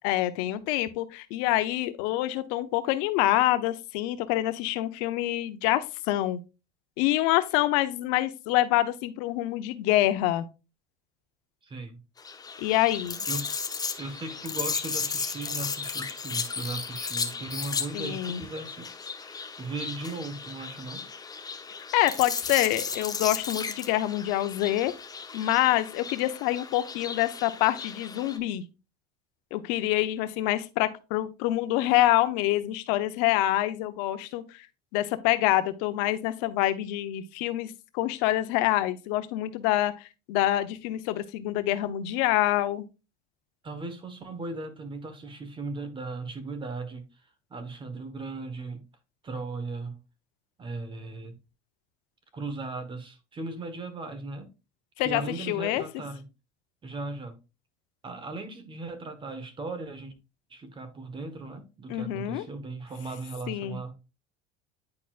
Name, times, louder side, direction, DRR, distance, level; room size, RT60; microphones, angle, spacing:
voice 1, 0.0-6.4 7.0-10.4 12.6-13.3 17.9-18.4 21.9-24.9 25.3-28.6 29.5-34.7 34.9-42.8 55.0-55.8 61.9-62.4 63.5-63.8, left 15 dB, 75° left, 0.9 m, -26 dB
voice 2, 11.6-12.0 13.3-13.6 14.0-18.9 19.2-21.1 43.6-47.1 47.5-48.8 49.2-50.0 50.6-51.3 52.3-54.5 55.0-56.2 56.8-57.4 58.0-60.1 60.5-63.9, right 3 dB, 25° right, 1.5 m, -37 dB
sound 1, 12.2-28.4, left 5 dB, 20° left, 0.9 m, -35 dB
9.8 x 4.2 x 2.5 m
supercardioid pair, 120°, 21 cm